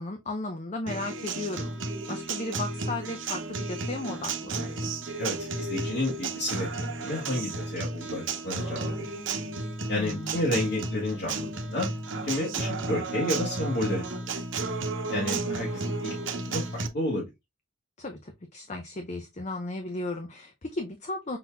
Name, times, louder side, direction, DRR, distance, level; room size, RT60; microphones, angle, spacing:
voice 1, 0.0-4.9 9.9-10.5 15.1-15.6 18.0-21.4, left 2 dB, 35° left, 0.6 m, -35 dB
Acoustic guitar, 0.9-16.9, right 3 dB, 65° right, 0.9 m, -33 dB
voice 2, 5.2-9.1 9.9-11.9 12.2-14.1 15.1-17.2, left 1 dB, 55° left, 1.7 m, -31 dB
5.7 x 4.1 x 2.2 m
head